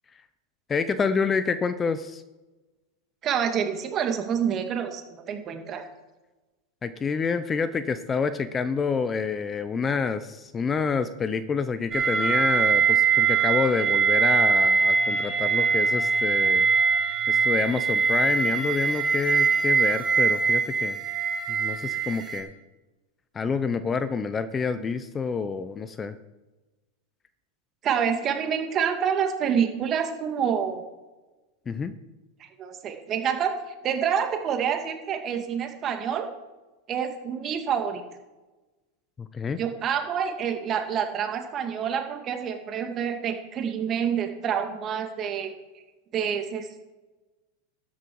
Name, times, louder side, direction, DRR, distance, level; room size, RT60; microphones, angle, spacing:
voice 1, 0.7-2.2 6.8-16.7 17.3-21.0 21.5-22.5 23.3-26.1 31.7-31.9 39.2-39.6, left 5 dB, 25° left, 12 dB, 0.8 m, -28 dB
voice 2, 3.2-5.8 27.8-30.8 32.4-36.3 36.9-38.0 39.6-45.5 46.1-46.9, right 8 dB, 35° right, 5 dB, 2.3 m, -27 dB
sound 1, 11.9-22.4, right 5 dB, 15° right, 4.3 m, -22 dB
13.0 x 10.5 x 4.8 m, 1.1 s
hypercardioid pair, 105°, 0 cm